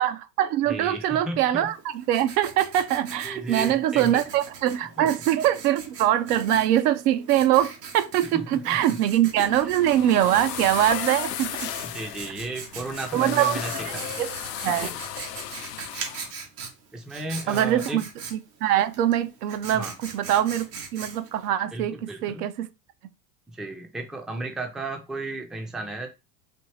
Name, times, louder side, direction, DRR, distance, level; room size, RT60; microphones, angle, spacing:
voice 1, 0.0-11.7 13.1-14.3 14.6-14.9 17.5-18.0 18.3-19.8 20.1-20.7 20.9-22.7, right 12 dB, 75° right, 0.7 m, -23 dB
voice 2, 0.7-1.4 3.2-4.2 5.0-5.1 8.2-9.0 9.6-9.7 11.8-14.2 14.7-15.0 16.9-18.0 19.7-20.0 21.7-22.5 23.5-26.1, right 2 dB, ahead, 0.4 m, -34 dB
Writing, 1.7-21.5, right 5 dB, 90° right, 1.4 m, -41 dB
sound 1, 9.5-16.3, left 11 dB, 85° left, 0.7 m, -35 dB
4.3 x 2.7 x 3.1 m
hypercardioid pair, 100°, 47 cm